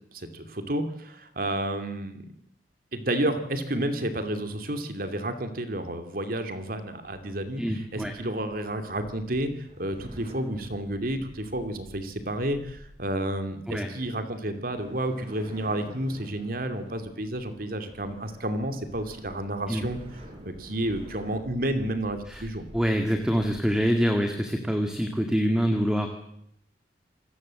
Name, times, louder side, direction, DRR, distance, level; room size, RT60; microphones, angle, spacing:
voice 1, 0.1-2.3 2.9-7.6 7.9-9.5 9.8-20.0 20.4-22.6, right 1 dB, 55° right, 8 dB, 2.8 m, -31 dB
voice 2, 7.6-8.1 13.7-13.9 19.7-19.9 22.3-22.5 22.7-26.1, equal, 5° right, 5 dB, 2.1 m, -25 dB
sound 1, 7.7-25.2, equal, 35° right, 5.5 m, -49 dB
27.5 x 20.0 x 7.7 m, 0.73 s
head